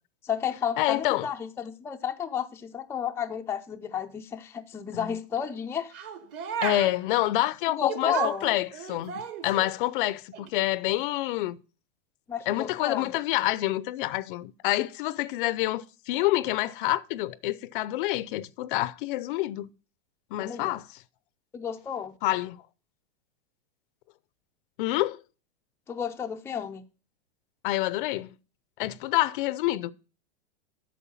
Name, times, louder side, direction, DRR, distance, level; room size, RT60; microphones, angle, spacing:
voice 1, 0.2-5.9 7.8-8.5 12.3-13.1 20.4-20.7 21.5-22.1 25.9-26.8, left 8 dB, 10° left, 0.4 m, -32 dB
voice 2, 0.8-1.3 4.9-5.1 6.6-11.6 12.5-19.7 20.3-20.9 22.2-22.6 24.8-25.2 27.6-28.3 28.8-29.9, left 16 dB, 55° left, 0.6 m, -27 dB
sound 1, 5.9-7.0 7.9-9.8 10.3-10.5, right 8 dB, 35° right, 1.3 m, -34 dB
8.5 x 6.5 x 5.5 m
supercardioid pair, 140°, 32 cm